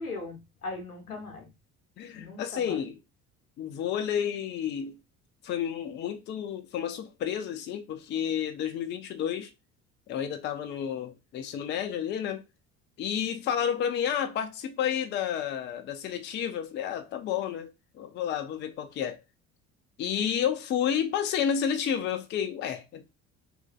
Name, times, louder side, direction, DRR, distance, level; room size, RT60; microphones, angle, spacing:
voice 1, 0.0-1.5 2.1-2.8, left 2 dB, 90° left, 0.8 m, -39 dB
voice 2, 2.0-2.9 3.6-4.9 5.4-9.5 10.1-12.4 13.0-19.2 20.0-23.0, left 9 dB, 25° left, 0.4 m, -31 dB
3.0 x 2.5 x 2.2 m
figure-of-eight pair, 60°, 43 cm